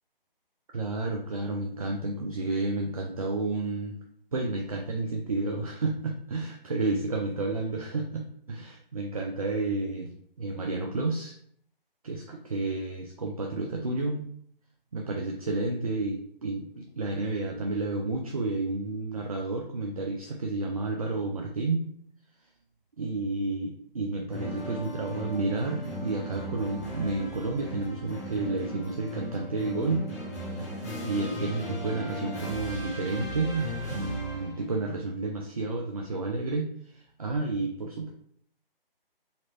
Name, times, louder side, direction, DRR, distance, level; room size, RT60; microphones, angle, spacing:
voice 1, 0.7-4.0 4.3-11.3 12.0-14.2 14.9-21.9 23.0-30.1 31.0-38.1, right 3 dB, 40° right, 1 dB, 0.4 m, -31 dB
sound 1, 24.3-34.7, equal, 15° left, 0.8 m, -37 dB
4.1 x 2.9 x 2.8 m, 0.66 s
figure-of-eight pair, 145°, 29 cm